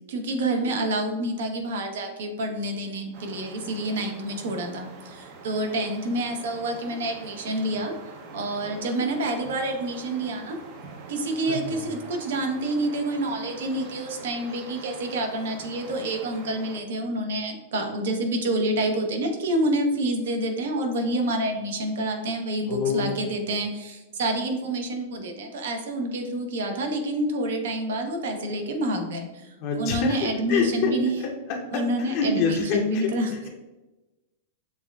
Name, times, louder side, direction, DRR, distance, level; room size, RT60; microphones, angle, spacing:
voice 1, 0.1-10.6 11.1-31.2 31.7-33.3, right 1 dB, 75° right, 4 dB, 0.8 m, -28 dB
sound 1, 3.1-16.8, right 4 dB, 45° right, 0.5 m, -44 dB
voice 2, 11.5-11.9 22.7-23.2 29.6-30.2 30.5-31.3 31.7-33.5, left 4 dB, 45° left, 0 dB, 0.6 m, -27 dB
6.6 x 2.4 x 2.3 m, 1.1 s
supercardioid pair, 150°, 0 cm